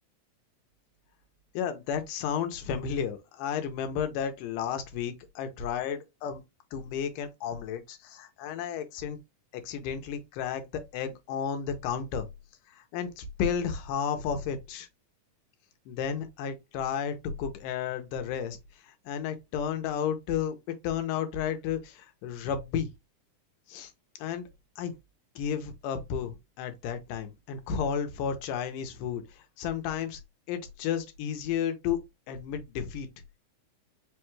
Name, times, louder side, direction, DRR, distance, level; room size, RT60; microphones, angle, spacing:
voice 1, 1.5-6.4 6.7-9.2 9.6-12.3 12.8-14.9 15.9-18.6 19.1-20.6 20.8-22.9 23.7-23.9 24.2-24.5 24.8-24.9 25.4-29.2 29.6-30.2 30.5-32.0 32.3-33.1, left 8 dB, 85° left, 2.4 m, -32 dB
5.2 x 2.3 x 3.0 m
omnidirectional pair, 3.7 m